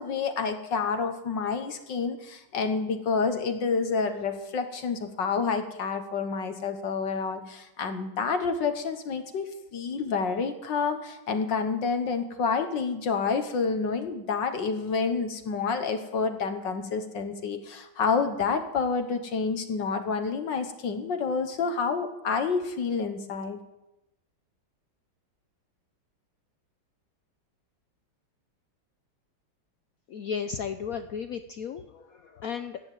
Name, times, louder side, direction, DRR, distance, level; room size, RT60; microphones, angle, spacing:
voice 1, 0.0-23.6, left 5 dB, 60° left, 8 dB, 1.8 m, -29 dB
voice 2, 30.1-32.8, left 7 dB, 80° left, 9 dB, 0.7 m, -34 dB
14.5 x 9.5 x 9.3 m, 0.93 s
omnidirectional pair, 2.3 m